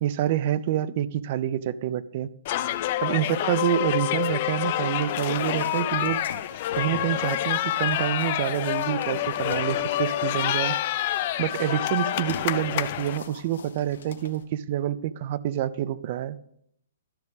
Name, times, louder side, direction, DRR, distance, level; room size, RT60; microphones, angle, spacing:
voice 1, 0.0-2.3 3.0-6.2 6.8-10.8 11.4-16.4, right 12 dB, 40° right, 17 dB, 0.4 m, -27 dB
sound 1, 2.5-13.2, left 13 dB, 40° left, 0.4 m, -27 dB
sound 2, 4.2-14.4, left 6 dB, 75° left, 1.2 m, -44 dB
12.0 x 6.0 x 3.5 m, 0.72 s
hypercardioid pair, 160°, 0 cm